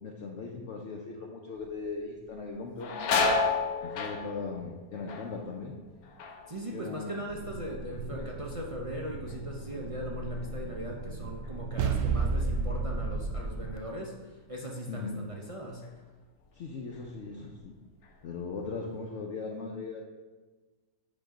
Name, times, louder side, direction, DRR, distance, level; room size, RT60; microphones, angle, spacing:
voice 1, 0.0-3.4 3.8-5.8 6.7-7.1 8.1-8.3 14.9-15.2 16.5-17.7 18.2-20.1, left 4 dB, 60° left, 0 dB, 0.9 m, -39 dB
sound 1, 1.6-2.0 2.3-7.9 8.2-8.8 9.3-12.2 12.5-12.7 13.6-13.8 14.3-15.4 15.8-16.0 16.6-17.2 17.6-18.7, left 4 dB, 85° left, 1.3 m, -34 dB
voice 2, 6.5-15.8, equal, 35° right, -1 dB, 0.5 m, -39 dB
sound 2, 7.3-13.8, right 4 dB, 70° right, 0.9 m, -34 dB
8.4 x 3.8 x 5.0 m, 1.3 s
omnidirectional pair, 1.5 m